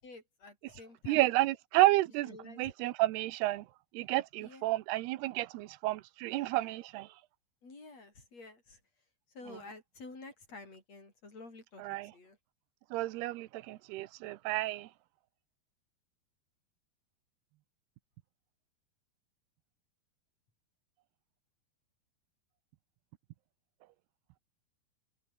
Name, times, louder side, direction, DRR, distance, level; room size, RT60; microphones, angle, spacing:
voice 1, 0.0-1.3 2.2-2.7 4.4-4.7 7.6-8.8 9.3-12.4, left 3 dB, 40° left, 8.2 m, -50 dB
voice 2, 1.1-3.7 3.9-7.1 11.8-12.1 12.9-14.9, right 17 dB, 85° right, 2.9 m, -31 dB
open air
omnidirectional pair, 4.5 m